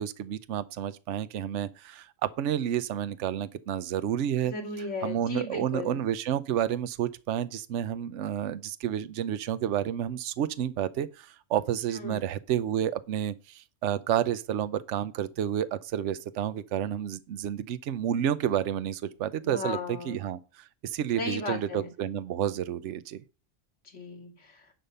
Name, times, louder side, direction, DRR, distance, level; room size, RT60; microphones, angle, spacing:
voice 1, 0.0-4.5 5.0-19.8 20.0-23.2, right 10 dB, 70° right, 1.0 m, -30 dB
voice 2, 4.4-6.0 11.9-12.3 19.4-20.2 21.2-21.9 23.8-24.7, left 3 dB, 70° left, 2.4 m, -36 dB
10.5 x 5.4 x 5.5 m
omnidirectional pair, 1.3 m